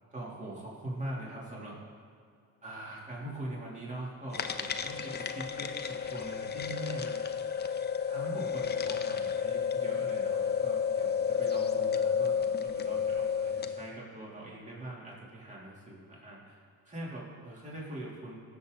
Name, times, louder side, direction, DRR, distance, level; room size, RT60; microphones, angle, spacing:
voice 1, 0.1-1.8 2.6-7.2 8.1-16.6 16.8-18.3, right 1 dB, 25° right, -5 dB, 3.2 m, -42 dB
sound 1, 4.3-13.9, left 7 dB, 35° left, 0.7 m, -31 dB
17.5 x 7.2 x 4.0 m, 2.3 s
cardioid pair, 90°, 30 cm